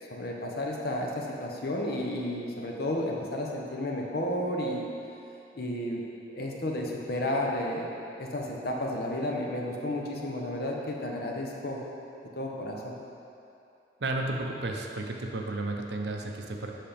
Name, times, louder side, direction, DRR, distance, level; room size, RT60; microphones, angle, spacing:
voice 1, 0.1-4.9 5.5-6.0 6.3-7.9 8.2-11.8 12.4-12.9, left 1 dB, 60° left, -1 dB, 0.8 m, -32 dB
voice 2, 14.0-16.7, right 2 dB, 70° right, 2 dB, 0.6 m, -33 dB
7.5 x 5.8 x 3.4 m, 2.7 s
head